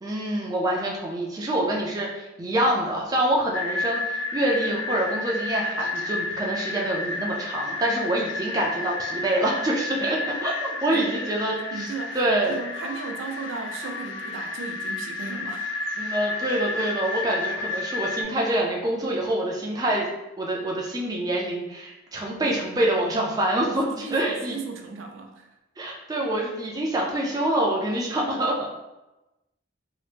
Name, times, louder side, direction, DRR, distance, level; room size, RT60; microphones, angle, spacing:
voice 1, 0.0-12.6 16.0-20.1 20.4-24.6 25.8-28.7, right 1 dB, 20° right, -2 dB, 0.3 m, -26 dB
sound 1, 3.5-18.2, left 3 dB, 75° left, 0.3 m, -31 dB
voice 2, 11.7-12.2 12.5-15.7 22.3-22.5 23.6-25.5, right 4 dB, 85° right, 3 dB, 0.4 m, -36 dB
2.8 x 2.0 x 3.2 m, 0.99 s
head